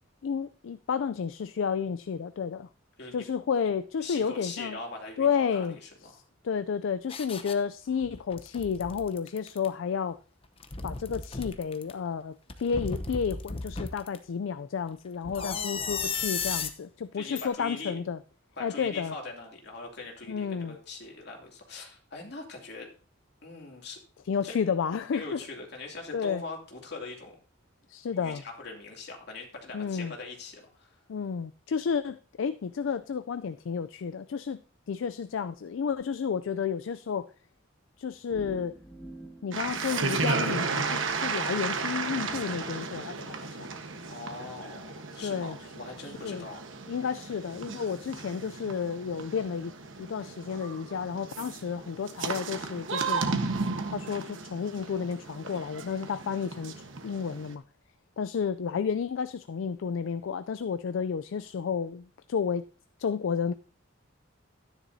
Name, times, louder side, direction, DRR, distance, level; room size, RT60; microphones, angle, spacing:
voice 1, 0.2-2.7 3.1-4.8 5.2-5.8 6.1-10.2 10.8-18.2 18.6-19.1 20.3-20.8 24.3-25.4 26.1-26.4 27.9-28.4 29.7-30.1 31.1-34.6 34.9-37.3 38.0-38.8 39.4-43.7 45.2-45.6 46.0-46.5 46.9-49.7 50.0-53.2 53.9-56.7 57.0-57.6 58.2-62.7 63.0-63.5, left 6 dB, 70° left, 0.4 m, -31 dB
voice 2, 4.0-6.2 15.3-16.4 17.1-18.0 18.6-22.9 23.4-24.0 24.4-24.5 25.1-27.3 28.1-31.0 44.1-46.6 51.3-51.6, left 3 dB, 55° left, 2.6 m, -42 dB
sound 1, 7.1-7.5 8.0-9.7 10.4-11.9 12.5-14.2 15.2-16.7 17.4-17.5, left 5 dB, 30° left, 0.8 m, -35 dB
sound 2, 38.3-41.2, right 2 dB, ahead, 1.4 m, -47 dB
sound 3, 39.5-57.5, right 4 dB, 75° right, 1.2 m, -34 dB
13.0 x 10.0 x 2.7 m
head